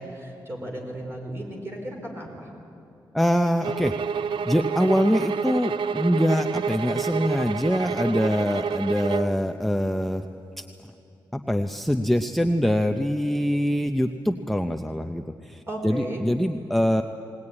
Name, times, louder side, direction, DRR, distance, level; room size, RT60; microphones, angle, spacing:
voice 1, 0.0-2.5 15.7-16.2, right 1 dB, 30° right, 0 dB, 4.7 m, -35 dB
voice 2, 3.1-4.2 4.5-10.3 10.6-10.7 11.3-17.0, equal, ahead, 6 dB, 0.6 m, -24 dB
sound 1, 3.6-9.4, right 6 dB, 80° right, 0.5 m, -28 dB
19.5 x 19.0 x 9.7 m, 2.7 s
wide cardioid pair, 125°, 8 cm